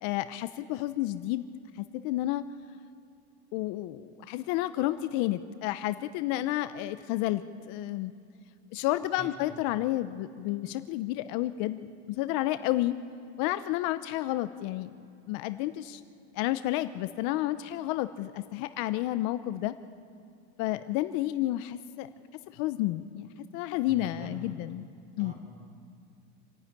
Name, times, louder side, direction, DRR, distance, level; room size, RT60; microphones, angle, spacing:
voice 1, 0.0-1.5 1.8-2.5 3.5-8.1 8.7-11.9 12.2-13.0 13.4-14.9 15.3-16.0 16.4-19.7 20.6-22.1 22.5-24.9 25.2-25.3, left 15 dB, 60° left, 12 dB, 0.8 m, -31 dB
voice 2, 9.2-9.6 23.9-24.5 25.2-25.3, right 2 dB, 20° right, 2 dB, 4.7 m, -45 dB
27.5 x 9.9 x 9.9 m, 2.4 s
supercardioid pair, 135°, 34 cm